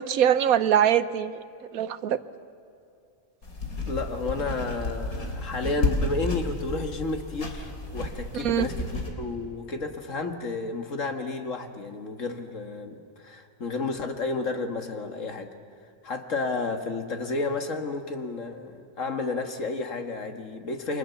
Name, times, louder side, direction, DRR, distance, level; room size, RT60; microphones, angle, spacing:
voice 1, 0.0-1.4 1.7-2.2 8.3-8.7, right 9 dB, 80° right, 14 dB, 1.3 m, -23 dB
sound 1, 3.4-9.1, left 2 dB, 90° left, 3.8 m, -32 dB
voice 2, 3.9-8.9 9.2-15.5 16.0-21.0, left 3 dB, 65° left, 5 dB, 2.1 m, -31 dB
29.5 x 24.5 x 7.1 m, 2.6 s
omnidirectional pair, 1.5 m